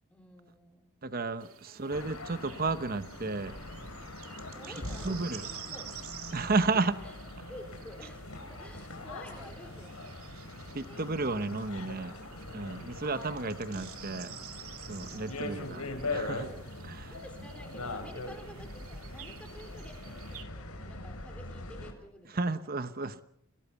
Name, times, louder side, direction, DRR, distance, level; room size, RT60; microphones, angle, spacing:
voice 1, 0.1-0.8 1.7-1.9 4.5-6.0 6.7-7.1 7.5-10.2 10.6-11.1 13.1-14.0 15.1-16.3 17.1-22.8 23.0-23.2, equal, 5° left, 4 dB, 3.7 m, -51 dB
voice 2, 1.0-3.5 5.0-5.4 6.3-6.9 10.7-12.2 12.5-14.3 14.9-16.5 16.8-17.1 22.3-23.2, right 3 dB, 40° right, 12 dB, 1.0 m, -32 dB
sound 1, 1.4-20.4, right 9 dB, 80° right, 2.3 m, -50 dB
sound 2, 1.9-21.9, left 2 dB, 85° left, 4.1 m, -42 dB
26.0 x 18.0 x 7.1 m, 0.70 s
head